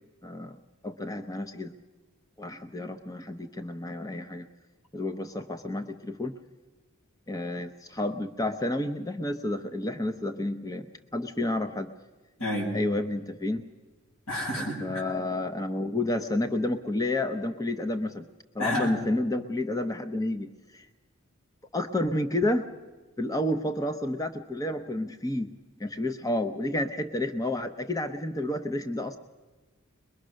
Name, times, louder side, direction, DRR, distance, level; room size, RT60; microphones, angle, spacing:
voice 1, 0.2-0.6 0.8-1.7 2.4-4.5 4.9-6.3 7.3-10.9 11.1-11.9 12.7-13.6 14.6-18.2 18.5-20.9 21.7-22.6 23.2-25.5 25.8-29.2, left 1 dB, 15° left, 7 dB, 0.7 m, -30 dB
voice 2, 12.4-12.7 14.3-15.0 18.6-18.9, left 1 dB, 75° left, -1 dB, 7.3 m, -29 dB
23.0 x 21.5 x 6.4 m, 1.3 s
head